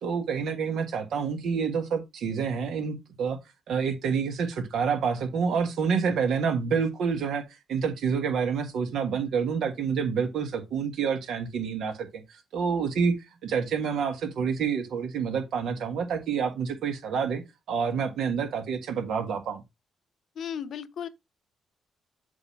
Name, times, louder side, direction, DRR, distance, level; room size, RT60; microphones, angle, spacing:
voice 1, 0.0-3.4 3.7-7.4 7.7-13.1 13.4-17.4 17.7-19.6, right 6 dB, 75° right, 1.5 m, -28 dB
voice 2, 20.3-21.1, left 8 dB, 60° left, 0.8 m, -35 dB
7.9 x 2.8 x 5.8 m
cardioid pair, 90°, 0 cm